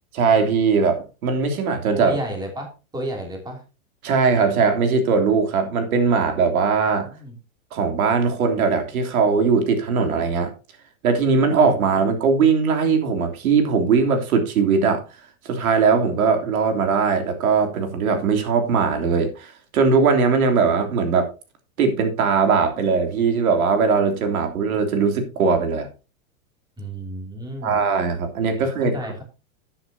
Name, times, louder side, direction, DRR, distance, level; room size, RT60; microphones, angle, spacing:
voice 1, 0.1-2.1 4.0-7.1 7.7-10.5 11.0-15.0 15.4-21.3 21.8-25.9 27.6-28.9, right 5 dB, 85° right, 5 dB, 3.2 m, -20 dB
voice 2, 1.9-3.6 7.0-7.3 26.8-27.8 28.5-29.2, right 1 dB, 10° right, 2 dB, 2.9 m, -32 dB
12.0 x 9.8 x 2.8 m, 0.31 s
supercardioid pair, 155°, 42 cm